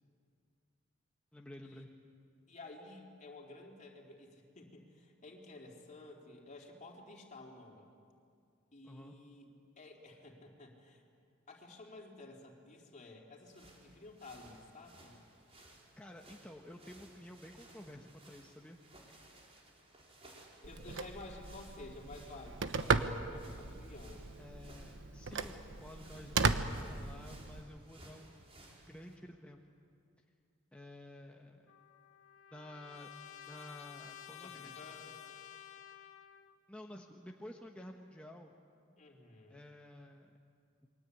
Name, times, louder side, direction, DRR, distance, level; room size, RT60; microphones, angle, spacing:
voice 1, 1.3-1.9 8.8-9.2 15.5-18.8 24.4-28.5 28.9-29.6 30.7-31.6 32.5-33.1 33.5-34.9 36.7-38.5 39.5-40.3, left 1 dB, 5° left, 0 dB, 1.2 m, -52 dB
voice 2, 2.5-7.9 8.7-9.5 9.8-11.0 11.5-15.2 20.6-24.2 34.4-35.4 39.0-39.6, left 2 dB, 40° left, 0 dB, 4.0 m, -53 dB
sound 1, 13.5-29.2, right 1 dB, 30° right, 4.8 m, -59 dB
Telephone, 20.6-27.6, right 4 dB, 65° right, 1.1 m, -36 dB
Trumpet, 31.7-36.6, left 10 dB, 75° left, 1.3 m, -52 dB
28.0 x 23.5 x 8.6 m, 2.4 s
head